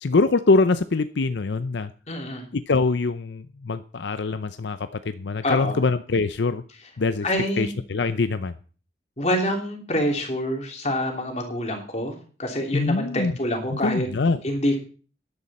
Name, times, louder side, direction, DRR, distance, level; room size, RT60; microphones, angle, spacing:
voice 1, 0.0-1.9 2.5-6.6 7.0-7.3 7.6-8.5 12.7-13.3 13.7-14.4, left 3 dB, 80° left, 12 dB, 0.6 m, -23 dB
voice 2, 2.1-2.4 5.4-5.8 7.2-7.7 9.2-14.1 14.4-14.8, left 1 dB, 40° left, 2 dB, 3.1 m, -26 dB
13.5 x 11.0 x 4.3 m, 0.39 s
head